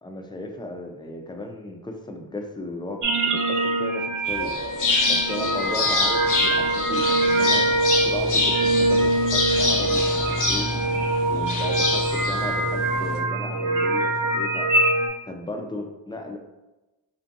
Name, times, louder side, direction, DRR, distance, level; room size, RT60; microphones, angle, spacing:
voice 1, 0.0-4.5 5.1-7.6 8.0-10.7 11.3-14.7 15.2-16.4, left 2 dB, 10° left, 2 dB, 0.4 m, -35 dB
sound 1, 3.0-15.1, right 2 dB, 40° right, 0.6 m, -23 dB
sound 2, 4.3-13.2, left 3 dB, 40° left, 0.7 m, -26 dB
2.6 x 2.5 x 2.5 m, 1.0 s
supercardioid pair, 50°, 48 cm